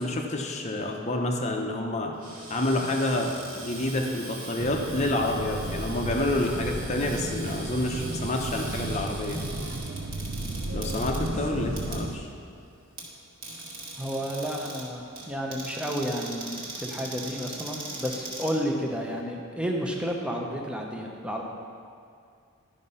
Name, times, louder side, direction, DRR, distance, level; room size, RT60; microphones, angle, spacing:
voice 1, 0.0-2.1 2.5-9.4 10.7-12.3, left 1 dB, 30° left, 1 dB, 0.7 m, -28 dB
Cupboard open or close, 2.1-19.2, right 2 dB, 45° right, 1.6 m, -41 dB
sound 1, 4.6-12.2, right 2 dB, 60° right, 0.7 m, -34 dB
voice 2, 14.0-21.4, equal, 5° right, 0 dB, 0.8 m, -31 dB
11.5 x 5.1 x 5.6 m, 2.3 s
head